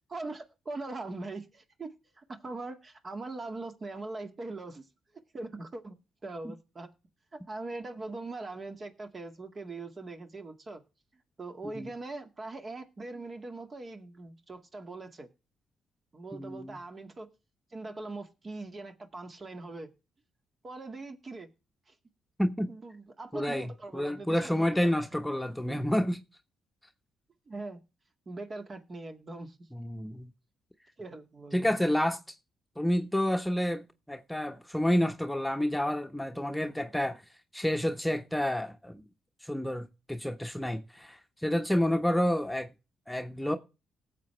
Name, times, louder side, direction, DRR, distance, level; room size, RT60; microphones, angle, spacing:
voice 1, 0.1-4.9 5.3-6.0 6.2-6.9 7.3-10.8 11.4-15.3 16.1-17.3 17.7-19.9 20.6-21.5 21.9-22.0 22.7-24.9 27.5-27.8 28.3-29.7 31.0-31.8, right 2 dB, 40° right, 2.1 m, -41 dB
voice 2, 16.3-16.8 22.4-22.7 23.3-26.2 29.7-30.3 31.5-32.3 32.8-37.2 37.5-39.0 39.4-42.7 43.1-43.6, equal, 5° left, 1.2 m, -29 dB
18.5 x 7.5 x 3.4 m
hypercardioid pair, 50°, 0 cm